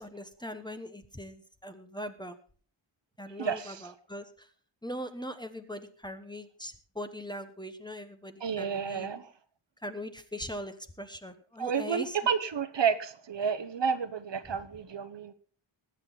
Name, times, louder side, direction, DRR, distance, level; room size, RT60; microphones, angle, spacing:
voice 1, 0.0-2.4 3.2-4.5 4.8-9.1 9.8-12.2, equal, 10° left, 1.0 m, -41 dB
voice 2, 3.4-3.9 8.4-9.3 11.6-15.3, right 6 dB, 60° right, 1.0 m, -31 dB
20.5 x 8.2 x 4.0 m
wide cardioid pair, 135°, 49 cm